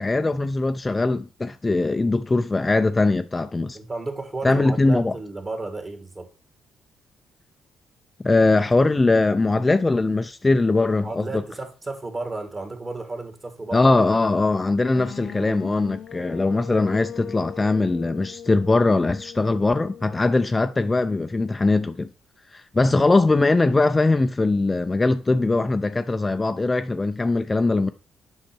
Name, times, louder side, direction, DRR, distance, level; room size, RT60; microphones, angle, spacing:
voice 1, 0.0-3.8 4.4-5.1 8.2-11.4 13.7-22.1 22.5-27.9, left 2 dB, 20° left, 0.5 m, -21 dB
voice 2, 3.7-6.3 11.0-14.0 22.8-22.9, right 2 dB, 30° right, 2.1 m, -33 dB
sound 1, 14.9-20.8, left 9 dB, 70° left, 0.7 m, -40 dB
7.4 x 5.7 x 4.4 m
cardioid pair, 90°, 0 cm